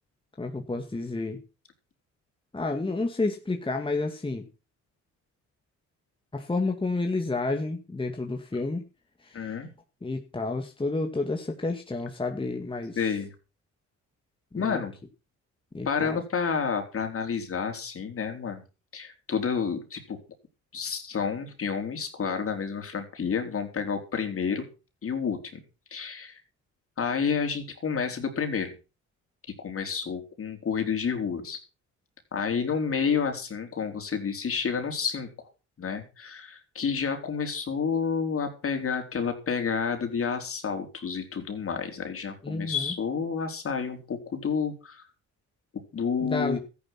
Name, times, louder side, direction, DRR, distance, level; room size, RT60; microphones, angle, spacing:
voice 1, 0.4-1.4 2.5-4.5 6.3-8.9 9.2-9.5 10.0-13.0 14.5-14.8 15.7-16.2 42.4-42.9 46.2-46.6, left 3 dB, 15° left, 3 dB, 2.1 m, -30 dB
voice 2, 9.3-9.7 13.0-13.3 14.5-14.9 15.8-18.6 18.9-20.2 20.7-24.7 25.0-25.6 25.9-26.4 27.0-28.7 29.6-31.6 32.3-35.5 35.8-45.0 45.7-46.6, left 6 dB, 45° left, 5 dB, 4.3 m, -30 dB
13.5 x 10.5 x 6.1 m, 0.33 s
cardioid pair, 90°, 30 cm